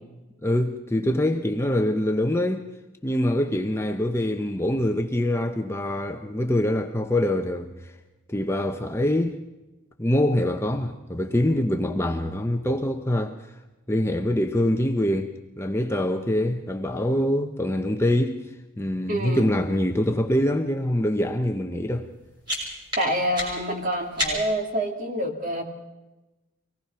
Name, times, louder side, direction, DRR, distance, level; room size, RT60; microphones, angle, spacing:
voice 1, 0.4-2.6 3.0-7.9 8.3-9.4 10.0-13.4 13.9-18.4 18.8-22.1, left 1 dB, 10° left, 0.8 m, -24 dB
voice 2, 19.1-19.5 23.0-25.6, equal, 40° right, 2.4 m, -27 dB
sound 1, 22.0-24.7, left 1 dB, 20° right, 6.3 m, -32 dB
24.5 x 18.5 x 5.8 m
head